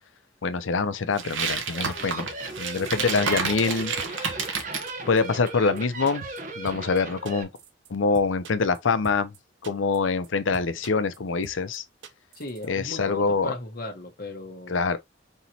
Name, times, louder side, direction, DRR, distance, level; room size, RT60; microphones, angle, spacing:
voice 1, 0.4-2.3 2.6-4.3 5.1-6.3 6.6-7.5 7.9-9.3 9.6-11.8 12.7-13.5 14.7-15.0, left 4 dB, 85° left, 0.6 m, -25 dB
sound 1, 1.2-4.9, right 5 dB, 85° right, 1.1 m, -30 dB
sound 2, 1.7-7.4, right 2 dB, 40° right, 0.9 m, -37 dB
sound 3, 2.8-3.1 3.4-3.5 3.7-4.6 4.9-5.2 5.5-5.6 5.8-5.9 6.1-6.4 6.7-7.0 7.3-7.9 8.1-8.8 9.0-9.4 9.6-10.0 10.2-10.3 10.5-11.2 11.4-11.8 12.0-12.7 12.9-13.0, right 4 dB, 70° right, 0.7 m, -43 dB
voice 2, 3.0-3.3 12.3-14.9, left 2 dB, 50° left, 1.0 m, -37 dB
5.6 x 2.9 x 2.8 m
head